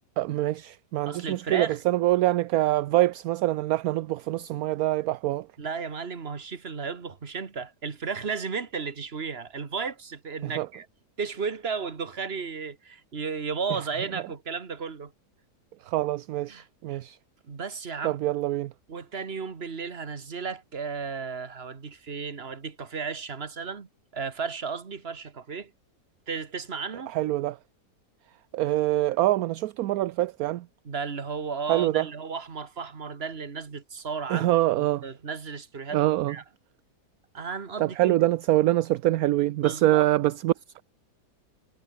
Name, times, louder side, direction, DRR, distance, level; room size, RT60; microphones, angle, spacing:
voice 1, 0.2-5.5 10.4-10.7 15.8-17.2 18.0-18.7 27.1-27.6 28.5-30.7 31.7-32.1 34.3-35.0 35.9-36.4 37.8-40.8, right 15 dB, 70° right, 1.0 m, -25 dB
voice 2, 1.1-1.8 5.6-10.9 11.2-15.1 16.5-17.0 17.5-18.2 18.9-23.9 24.1-25.7 26.3-27.1 30.8-34.5 34.7-36.4 37.3-38.1 39.6-40.1, right 5 dB, 40° right, 1.9 m, -34 dB
omnidirectional pair, 1.7 m